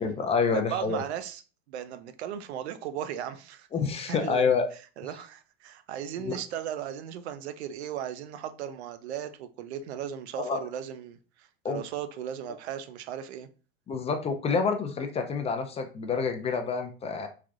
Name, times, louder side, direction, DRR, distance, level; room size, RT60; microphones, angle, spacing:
voice 1, 0.0-1.0 3.7-4.7 6.2-6.4 10.4-10.6 11.6-11.8 13.9-17.3, left 5 dB, 20° left, 0.3 m, -28 dB
voice 2, 0.5-1.4 1.7-3.7 4.1-4.5 5.0-13.5, right 9 dB, 85° right, 0.5 m, -36 dB
3.3 x 2.5 x 2.3 m
hypercardioid pair, 100°, 32 cm